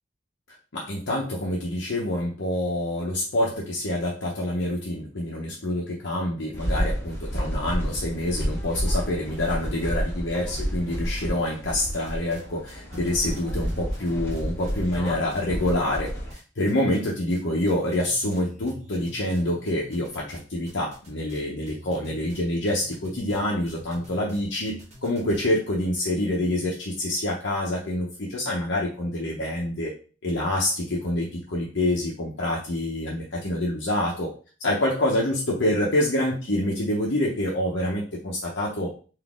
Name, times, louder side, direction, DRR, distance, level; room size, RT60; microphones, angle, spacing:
voice 1, 0.7-16.1 16.6-24.7 25.0-29.9 30.2-34.3 34.6-38.9, left 1 dB, 65° left, -4 dB, 0.9 m, -26 dB
sound 1, 6.5-16.3, equal, 15° left, 1.7 m, -30 dB
sound 2, 11.7-12.4 12.7-16.4 16.7-17.4 17.7-25.5, right 1 dB, 35° right, 1.1 m, -46 dB
4.0 x 2.7 x 3.6 m, 0.37 s
head